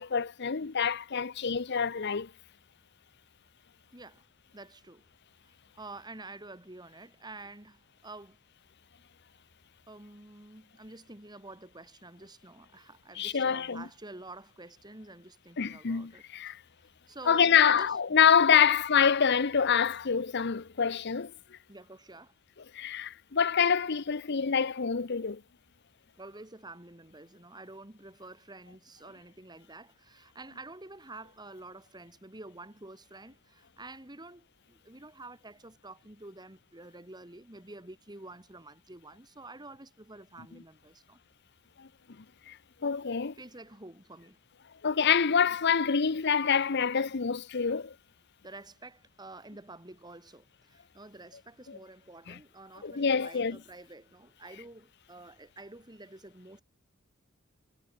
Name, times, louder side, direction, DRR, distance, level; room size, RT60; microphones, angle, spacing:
voice 1, 0.0-2.3 13.2-13.8 15.6-16.6 17.3-21.3 22.7-25.4 42.5-42.6 42.8-43.3 44.8-47.9 52.3-52.4 52.8-53.6, left 7 dB, 55° left, 0.8 m, -26 dB
voice 2, 3.9-4.2 4.5-5.0 5.4-8.4 9.9-16.5 17.1-17.9 18.5-18.7 21.7-22.3 26.2-41.2 43.4-44.4 48.4-56.6, right 2 dB, 20° right, 2.3 m, -49 dB
head